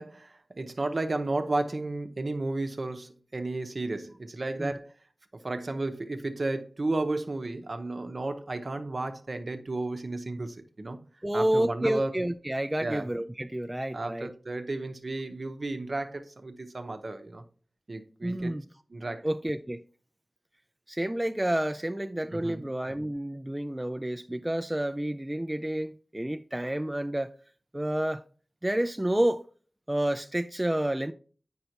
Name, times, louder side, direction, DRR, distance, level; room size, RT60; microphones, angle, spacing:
voice 1, 0.0-4.9 5.3-11.0 11.3-12.1 12.8-13.1 13.9-17.4 17.9-18.6 18.9-19.2 22.3-22.6, right 2 dB, 60° right, 0.8 m, -33 dB
voice 2, 11.2-14.3 18.2-18.6 19.2-19.8 20.9-27.3 27.7-28.2 28.6-29.4 29.9-31.1, right 1 dB, 20° right, 0.3 m, -29 dB
7.7 x 5.5 x 2.8 m
cardioid pair, 40°, 0 cm